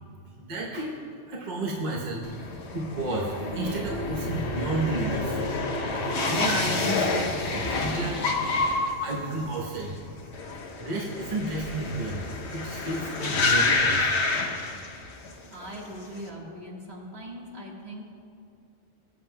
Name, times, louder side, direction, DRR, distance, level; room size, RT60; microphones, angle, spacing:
voice 1, 0.4-0.9 1.3-5.4 5.9-8.5 9.0-10.0 10.8-12.2 12.5-14.2 15.2-15.3, right 2 dB, 40° right, -3 dB, 1.0 m, -32 dB
sound 1, 2.2-15.3 15.6-16.2, left 3 dB, 65° left, 1.1 m, -28 dB
voice 2, 15.3-18.0, equal, 60° right, -3 dB, 1.9 m, -41 dB
21.0 x 7.6 x 2.2 m, 2.4 s
omnidirectional pair, 1.2 m